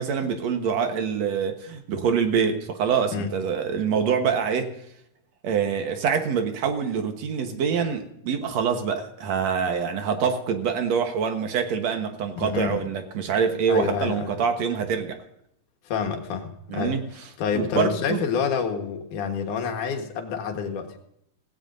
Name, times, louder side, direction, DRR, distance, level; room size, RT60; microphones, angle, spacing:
voice 1, 0.0-4.7 5.4-15.2 16.7-17.0 17.5-18.2, right 6 dB, 65° right, 6 dB, 2.4 m, -25 dB
voice 2, 12.4-12.9 13.7-14.3 15.8-17.0 17.4-21.0, left 6 dB, 85° left, 4 dB, 3.0 m, -28 dB
17.0 x 16.5 x 2.7 m, 0.75 s
omnidirectional pair, 3.5 m